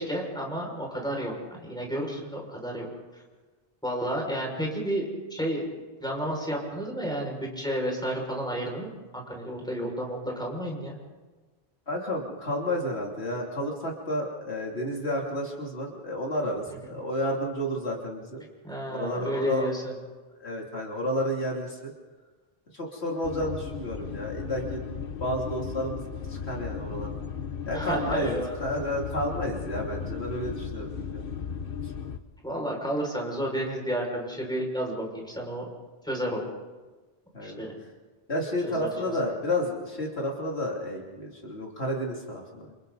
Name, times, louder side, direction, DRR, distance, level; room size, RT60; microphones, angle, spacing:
voice 1, 0.0-2.9 3.8-11.0 18.6-19.9 27.7-28.6 32.4-35.7 36.0-36.4 37.4-37.7 38.6-39.2, equal, 5° left, -1 dB, 5.9 m, -31 dB
voice 2, 11.9-18.4 18.9-19.7 20.4-21.9 22.7-26.0 26.3-27.2 27.7-31.2 31.8-31.9 37.3-37.6 38.3-42.7, equal, 80° left, -1 dB, 3.4 m, -31 dB
sound 1, 23.2-32.2, left 6 dB, 55° left, 1.2 m, -36 dB
29.5 x 28.0 x 4.1 m, 1.3 s
omnidirectional pair, 1.1 m